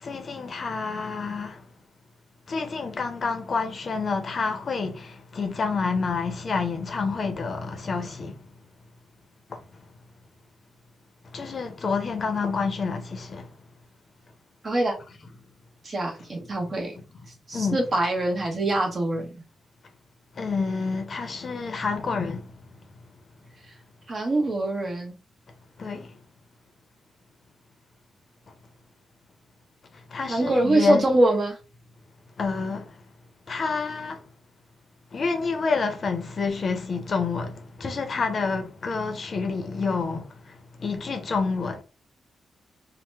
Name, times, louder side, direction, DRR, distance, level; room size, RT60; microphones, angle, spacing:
voice 1, 0.0-1.6 2.5-8.4 9.5-9.6 11.3-13.5 16.7-16.8 17.5-17.8 20.4-22.5 25.8-26.1 30.1-31.1 32.4-32.9 33.5-34.2 35.1-41.8, left 4 dB, 45° left, 0.6 m, -28 dB
voice 2, 14.6-15.0 15.8-16.9 17.5-19.2 24.1-25.1 30.3-31.6, right 2 dB, 40° right, 1.1 m, -24 dB
2.9 x 2.1 x 3.3 m
cardioid pair, 95°, 0 cm